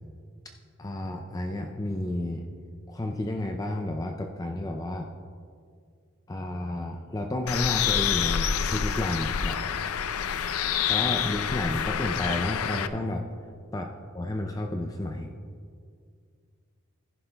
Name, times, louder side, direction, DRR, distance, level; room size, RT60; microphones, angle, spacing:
voice 1, 0.8-2.4 2.9-5.1 6.3-9.6 10.8-13.2 13.7-15.3, left 1 dB, 15° left, 3 dB, 0.4 m, -31 dB
Bird, 7.5-12.9, left 8 dB, 85° left, 0.4 m, -27 dB
14.5 x 11.0 x 2.3 m, 2.2 s
head